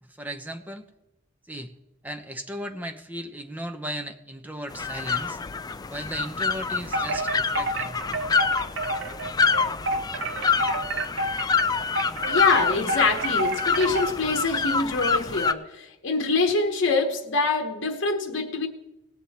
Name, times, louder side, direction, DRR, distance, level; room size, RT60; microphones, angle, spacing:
voice 1, 0.0-0.8 1.5-1.7 2.0-5.4 5.9-8.0, equal, 10° right, 6 dB, 0.8 m, -36 dB
sound 1, 4.7-15.5, left 5 dB, 20° left, 0.3 m, -26 dB
Wind chime, 6.9-14.2, right 2 dB, 70° right, 1.0 m, -30 dB
voice 2, 12.3-18.7, left 3 dB, 60° left, 4 dB, 1.1 m, -25 dB
18.5 x 7.7 x 4.2 m, 0.91 s
head